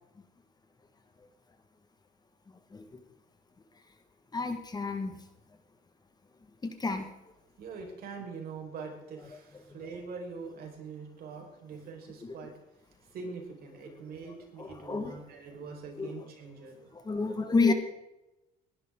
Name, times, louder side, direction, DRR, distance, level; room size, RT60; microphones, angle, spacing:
voice 1, 4.3-5.2 6.6-7.1 12.2-12.5 14.6-15.2 16.0-16.1 16.9-17.7, left 3 dB, 25° left, 7 dB, 1.6 m, -30 dB
voice 2, 7.6-12.5 13.0-16.9, right 4 dB, 65° right, 1 dB, 4.7 m, -43 dB
19.0 x 11.5 x 3.7 m, 0.94 s
cardioid pair, 110°, 17 cm